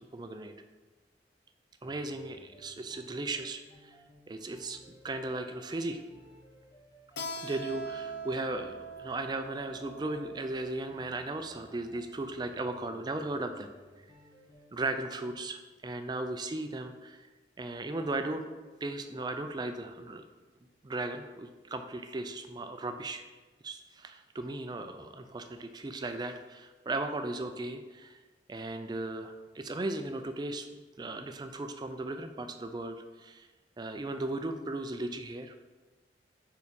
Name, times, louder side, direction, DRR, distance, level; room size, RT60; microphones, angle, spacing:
voice 1, 0.1-0.5 1.8-3.9 4.3-6.0 7.3-13.7 14.7-17.3 17.6-18.4 18.8-20.2 20.8-23.2 23.6-28.2 28.5-30.7 31.0-33.5 33.8-35.6, right 2 dB, 25° right, 7 dB, 0.4 m, -36 dB
sound 1, 2.1-15.4, equal, 20° left, 0.8 m, -59 dB
Keyboard (musical), 7.2-12.4, right 2 dB, 65° left, 0.5 m, -43 dB
4.8 x 4.7 x 5.2 m, 1.3 s
head